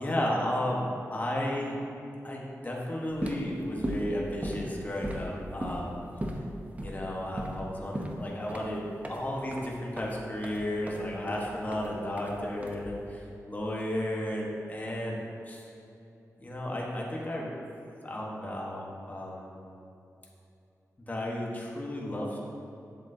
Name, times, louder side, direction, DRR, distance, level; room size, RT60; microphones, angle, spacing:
voice 1, 0.0-1.8 2.2-6.0 6.8-15.2 15.5-15.7 16.4-17.5 18.0-19.5 21.1-22.4, left 1 dB, 30° left, -3 dB, 1.2 m, -33 dB
sound 1, 3.0-13.2, equal, 25° right, 0.8 m, -38 dB
7.7 x 7.3 x 2.7 m, 2.7 s
cardioid pair, 70°, 6 cm